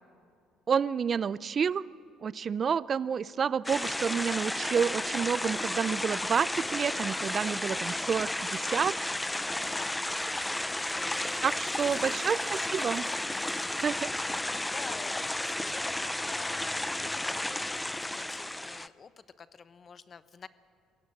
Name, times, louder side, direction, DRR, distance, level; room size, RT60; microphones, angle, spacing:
voice 1, 0.7-1.9 2.2-9.1 11.4-13.1 13.8-14.1, right 7 dB, 45° right, 19 dB, 0.5 m, -29 dB
sound 1, 3.6-18.9, left 1 dB, 10° left, 0.5 m, -33 dB
voice 2, 9.5-10.1 10.6-12.3 14.7-19.1 19.4-20.5, left 6 dB, 40° left, 14 dB, 1.0 m, -48 dB
sound 2, 9.7-13.9, right 2 dB, 15° right, 4.5 m, -54 dB
23.5 x 17.0 x 7.8 m, 2.3 s
supercardioid pair, 80°, 0 cm